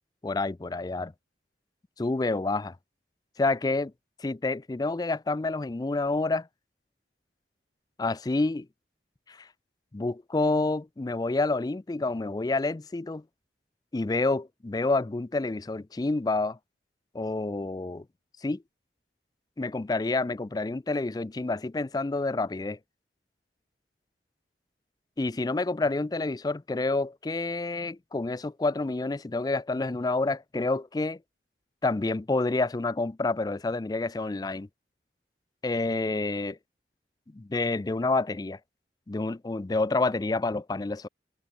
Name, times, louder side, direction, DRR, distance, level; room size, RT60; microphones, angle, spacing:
voice 1, 0.2-1.1 2.0-2.8 3.4-3.9 4.2-6.5 8.0-8.7 9.3-9.5 9.9-13.2 13.9-16.6 17.1-18.0 18.4-18.6 19.6-22.8 25.2-31.2 31.8-34.7 35.6-36.6 37.3-38.6 39.1-41.1, left 3 dB, 20° left, 0.4 m, -28 dB
head